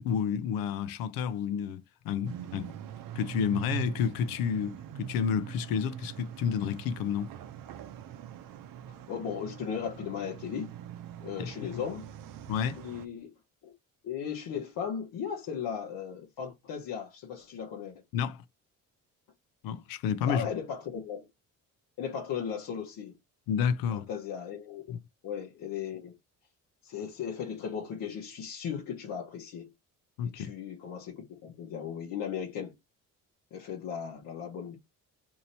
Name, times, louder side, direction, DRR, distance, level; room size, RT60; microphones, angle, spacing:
voice 1, 0.0-2.7 3.1-7.3 11.4-11.5 12.5-12.8 18.1-18.4 19.6-20.5 23.5-24.1 24.9-25.0 30.2-30.5, left 7 dB, 90° left, 0.6 m, -30 dB
sound 1, 2.2-13.1, right 11 dB, 70° right, 0.6 m, -43 dB
voice 2, 8.9-10.7 11.2-12.1 12.8-13.3 13.6-13.7 14.0-18.0 20.2-21.3 22.0-23.2 23.9-25.0 25.2-26.1 26.8-29.7 30.2-32.7 33.5-34.8, left 7 dB, 70° left, 1.0 m, -37 dB
2.8 x 2.7 x 4.2 m
cardioid pair, 85°, 34 cm